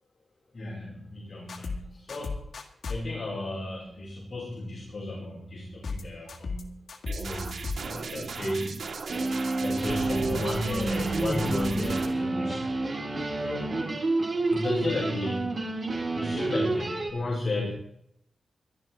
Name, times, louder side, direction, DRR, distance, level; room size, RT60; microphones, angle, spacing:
voice 1, 0.5-2.4 2.9-6.8 7.2-8.9 9.6-12.7 13.4-13.8 14.5-15.7 16.1-17.7, left 2 dB, 40° left, -4 dB, 4.6 m, -34 dB
sound 1, 1.5-1.8 2.1-3.0 5.8-6.0 6.3-6.6 6.9-7.8, left 4 dB, 60° left, 1.9 m, -34 dB
sound 2, 7.1-12.1, right 4 dB, 90° right, 2.7 m, -36 dB
sound 3, 9.1-17.1, right 2 dB, 35° right, 3.2 m, -29 dB
22.0 x 11.5 x 4.6 m, 0.70 s
wide cardioid pair, 175°, 0 cm